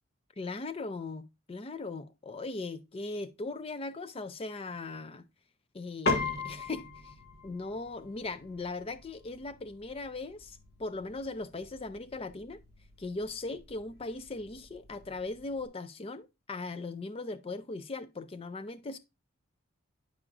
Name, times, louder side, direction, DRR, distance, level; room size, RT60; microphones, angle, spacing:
voice 1, 0.4-5.3 5.7-7.1 7.4-12.6 13.0-19.0, left 3 dB, 25° left, 0.4 m, -39 dB
Piano, 6.1-15.7, left 3 dB, 45° left, 1.3 m, -39 dB
9.9 x 4.9 x 2.4 m
head